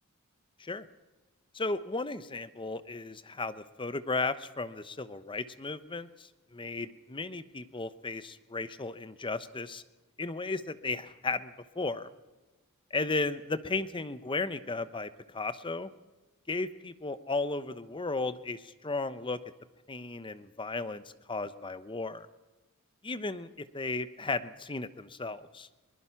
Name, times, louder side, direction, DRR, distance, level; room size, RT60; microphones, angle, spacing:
voice 1, 1.5-9.8 10.2-12.1 12.9-15.9 16.5-19.4 19.9-21.0 21.3-22.3 23.0-23.5 23.7-25.7, left 3 dB, 20° left, 13 dB, 0.9 m, -35 dB
22.5 x 20.5 x 5.9 m, 1.2 s
head